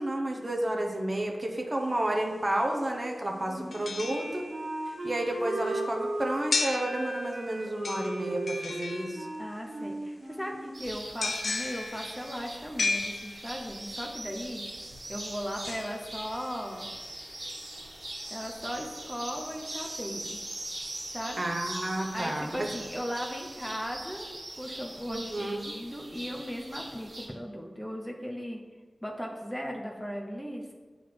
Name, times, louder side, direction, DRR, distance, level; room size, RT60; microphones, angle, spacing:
voice 1, 0.0-4.4 4.9-9.3 21.4-22.7 25.1-25.7, right 1 dB, 30° right, 1 dB, 1.0 m, -31 dB
sound 1, 1.7-1.8 3.7-4.9 6.5-7.5 7.8-9.6 11.2-13.7 15.6-16.8 17.3-17.4, left 3 dB, 80° left, 0.6 m, -35 dB
voice 2, 3.3-3.8 9.4-14.6 15.1-16.9 18.3-20.4 21.1-21.4 22.1-24.3 24.6-28.6 29.0-30.7, equal, 5° left, 0 dB, 0.8 m, -37 dB
Wind instrument woodwind instrument, 3.5-11.1, right 2 dB, 80° right, 1.2 m, -37 dB
sound 2, 10.7-27.3, right 1 dB, 55° right, 1.9 m, -41 dB
8.0 x 4.0 x 4.7 m, 1.4 s
wide cardioid pair, 60°, 0 cm